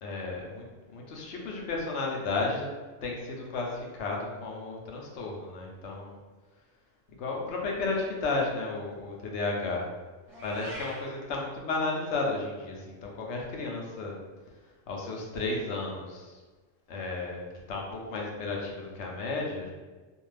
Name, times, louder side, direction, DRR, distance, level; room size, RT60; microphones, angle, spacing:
voice 1, 0.0-2.7 3.0-6.2 7.2-9.9 10.4-14.2 14.9-16.4 16.9-19.7, left 3 dB, 70° left, -1 dB, 0.8 m, -33 dB
Meow, 10.3-11.1, equal, 35° right, 0.9 m, -41 dB
2.5 x 2.3 x 3.2 m, 1.3 s
omnidirectional pair, 1.3 m